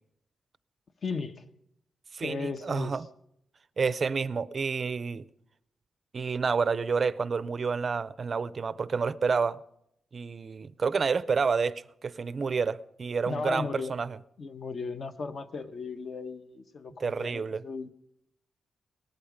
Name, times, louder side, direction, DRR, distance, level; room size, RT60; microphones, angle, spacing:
voice 1, 1.0-1.4 2.2-2.9 13.3-13.9 14.4-17.9, left 4 dB, 45° left, 0.9 m, -36 dB
voice 2, 2.1-3.1 3.8-5.3 6.1-9.6 10.1-14.2 17.0-17.6, right 5 dB, 40° right, 0.5 m, -29 dB
18.5 x 13.0 x 5.1 m
wide cardioid pair, 130°, 0 cm